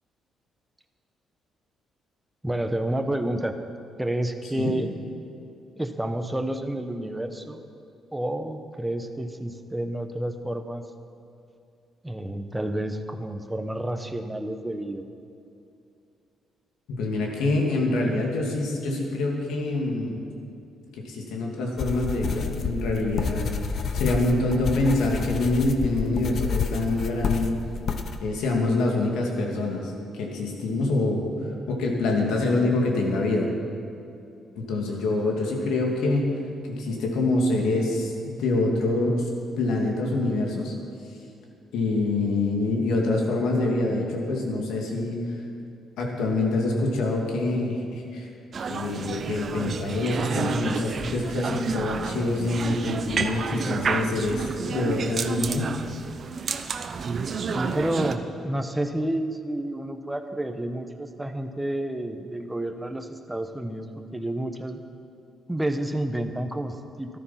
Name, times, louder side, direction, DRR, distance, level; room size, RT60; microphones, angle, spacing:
voice 1, 2.4-3.6 4.0-4.9 5.8-7.6 8.1-10.8 12.0-15.1 57.3-64.8 65.5-67.2, right 1 dB, 10° right, 6 dB, 1.0 m, -30 dB
voice 2, 16.9-20.2 20.9-27.6 28.2-31.3 31.7-33.5 34.5-36.3 36.6-39.3 39.6-40.7 41.7-45.2 46.0-48.3 48.6-55.7, left 2 dB, 85° left, 0 dB, 2.4 m, -25 dB
sound 1, 21.8-28.2, left 5 dB, 55° left, 1.0 m, -29 dB
sound 2, 48.5-58.2, right 5 dB, 50° right, 0.8 m, -30 dB
13.5 x 12.5 x 5.8 m, 2.6 s
cardioid pair, 90°, 0 cm